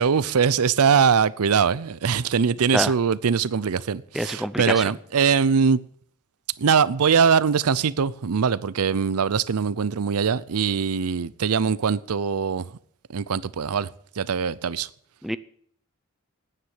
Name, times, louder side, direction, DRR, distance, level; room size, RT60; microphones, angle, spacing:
voice 1, 0.0-5.8 6.6-12.7 13.1-13.9 14.2-14.9, right 6 dB, 85° right, 0.5 m, -22 dB
voice 2, 4.1-4.8 15.2-15.4, equal, ahead, 0.5 m, -26 dB
10.0 x 9.4 x 9.0 m
head